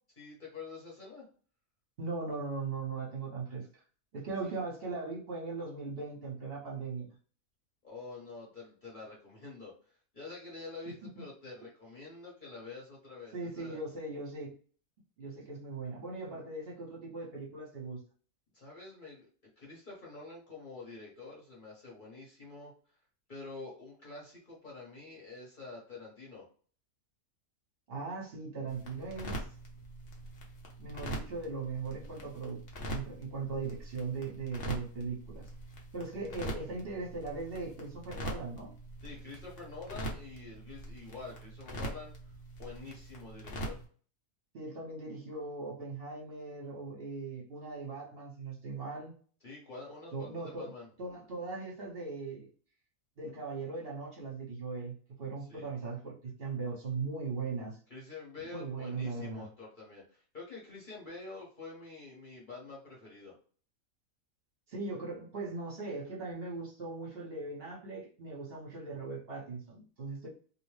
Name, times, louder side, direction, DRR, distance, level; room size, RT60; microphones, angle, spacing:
voice 1, 0.2-1.3 4.4-4.5 7.8-13.8 18.5-19.3 19.6-22.7 23.3-26.5 39.0-42.1 42.6-43.8 49.4-50.9 55.5-55.7 57.9-63.3, left 3 dB, 40° left, 1.0 m, -47 dB
voice 2, 2.0-3.7 4.1-7.1 13.3-14.5 15.2-18.0 27.9-29.4 30.8-32.6 32.9-35.5 35.9-38.7 44.5-49.1 50.1-50.7 51.0-52.5 53.2-57.8 58.4-59.4 64.7-70.3, right 4 dB, 50° right, 1.0 m, -39 dB
sound 1, 28.7-43.9, right 1 dB, 65° left, 1.0 m, -43 dB
2.7 x 2.1 x 3.1 m
omnidirectional pair, 1.5 m